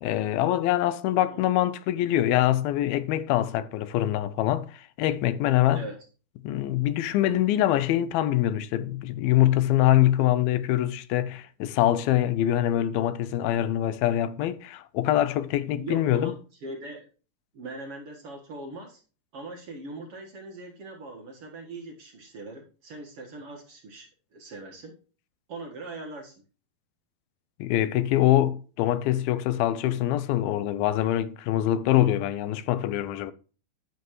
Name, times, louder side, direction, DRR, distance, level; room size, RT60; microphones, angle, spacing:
voice 1, 0.0-5.9 6.4-16.3 27.6-33.3, left 13 dB, 85° left, 2.6 m, -24 dB
voice 2, 15.6-17.1 17.5-19.0 19.3-24.9 25.5-26.3, right 2 dB, 50° right, 2.0 m, -41 dB
10.0 x 8.1 x 3.1 m
omnidirectional pair, 4.2 m